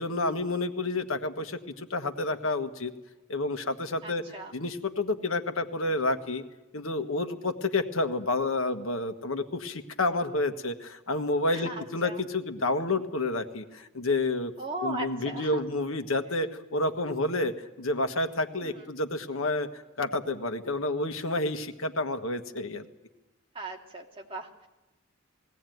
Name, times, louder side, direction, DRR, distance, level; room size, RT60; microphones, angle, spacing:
voice 1, 0.0-2.9 3.3-4.2 4.5-6.4 6.7-14.5 14.8-19.7 20.0-22.8, left 2 dB, 80° left, 8 dB, 1.5 m, -29 dB
voice 2, 4.0-4.5 11.5-12.2 14.6-15.6 18.6-18.8 23.5-24.7, right 1 dB, 25° right, 0 dB, 2.6 m, -38 dB
20.5 x 17.0 x 9.3 m, 1.1 s
head